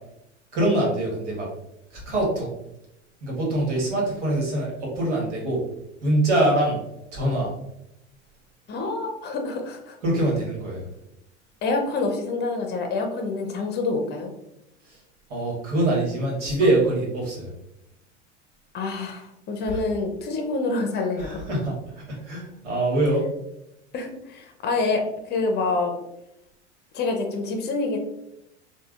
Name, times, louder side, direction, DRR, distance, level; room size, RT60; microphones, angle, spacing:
voice 1, 0.5-1.5 1.9-2.5 3.2-5.6 6.0-6.8 7.1-7.5 10.0-10.9 14.8-15.0 15.3-17.5 19.7-19.8 21.2-23.3, right 1 dB, 75° right, -3 dB, 1.3 m, -24 dB
voice 2, 8.7-10.0 11.6-14.3 18.7-21.4 23.9-25.9 26.9-28.0, left 3 dB, 30° left, 4 dB, 0.6 m, -27 dB
3.3 x 2.3 x 2.3 m, 0.84 s
hypercardioid pair, 90°, 35 cm